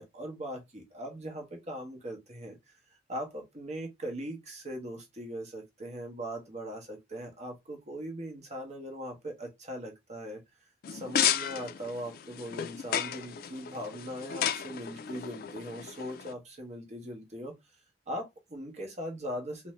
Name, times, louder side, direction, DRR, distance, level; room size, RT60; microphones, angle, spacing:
voice 1, 0.0-2.6 3.1-10.4 10.9-17.5 18.1-19.7, equal, 40° right, 0.8 m, -40 dB
sound 1, 10.8-16.3, left 9 dB, 55° left, 0.3 m, -33 dB
2.5 x 2.1 x 3.0 m
head